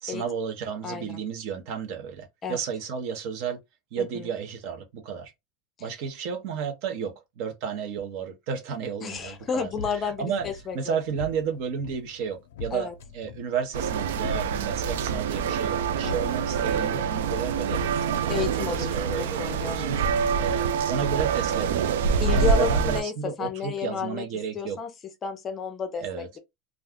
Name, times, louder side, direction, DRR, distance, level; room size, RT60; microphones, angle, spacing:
voice 1, 0.0-3.6 3.9-5.3 5.8-10.5 10.7-20.0 20.4-22.0 22.3-24.8 26.0-26.3, right 7 dB, 50° right, 0.7 m, -32 dB
voice 2, 4.0-4.3 9.0-10.9 12.7-12.9 16.0-16.3 18.3-18.9 19.4-19.9 22.2-24.2 24.5-24.9 25.2-26.4, left 6 dB, 20° left, 0.5 m, -31 dB
sound 1, 9.2-19.7, left 3 dB, 90° left, 0.5 m, -43 dB
sound 2, 13.7-23.0, right 6 dB, 85° right, 0.3 m, -26 dB
2.4 x 2.3 x 3.5 m
supercardioid pair, 165°, 0 cm